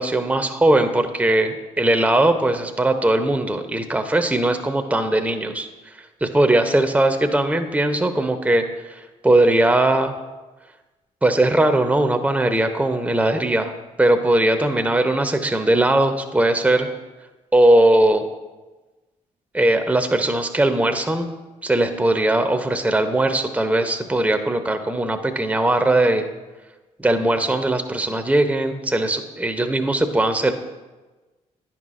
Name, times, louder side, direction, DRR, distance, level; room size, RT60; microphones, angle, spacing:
voice 1, 0.0-5.7 6.2-10.1 11.2-13.7 14.0-16.9 17.5-18.3 19.5-21.3 21.6-26.3 27.0-30.5, right 1 dB, 10° right, 7 dB, 0.7 m, -19 dB
10.5 x 5.8 x 2.5 m, 1.2 s
hypercardioid pair, 45°, 18 cm